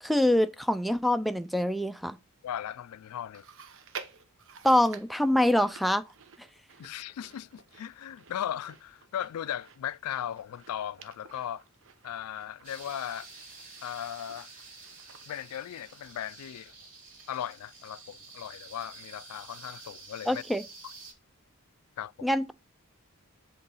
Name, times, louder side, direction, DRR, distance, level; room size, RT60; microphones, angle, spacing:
voice 1, 0.0-2.2 4.6-6.0 20.3-20.6 22.2-22.5, left 1 dB, ahead, 0.3 m, -25 dB
voice 2, 2.4-3.4 6.8-11.6 12.0-13.3 13.8-14.5 15.3-16.7 17.3-20.4 22.0-22.3, left 10 dB, 80° left, 0.3 m, -37 dB
Chewing mastication, 3.3-16.9 17.2-17.3 18.1-18.2, right 6 dB, 60° right, 0.9 m, -51 dB
sound 1, 12.6-21.1, right 3 dB, 40° right, 3.0 m, -49 dB
7.8 x 3.8 x 5.5 m
head